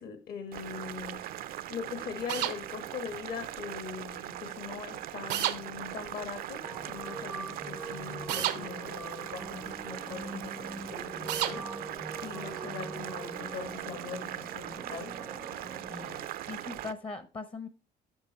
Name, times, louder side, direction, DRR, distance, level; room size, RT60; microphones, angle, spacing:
voice 1, 0.0-11.6 12.2-15.1, left 6 dB, 65° left, 8 dB, 1.7 m, -41 dB
Boiling, 0.5-16.9, right 12 dB, 60° right, 0.5 m, -40 dB
sound 1, 2.3-2.6 5.3-5.6 8.3-8.6 11.3-11.6, right 12 dB, 90° right, 0.8 m, -29 dB
sound 2, 6.6-16.2, right 1 dB, ahead, 0.5 m, -44 dB
voice 2, 15.9-17.7, left 3 dB, 30° left, 11 dB, 0.8 m, -41 dB
8.2 x 5.9 x 3.1 m, 0.32 s
cardioid pair, 110°, 17 cm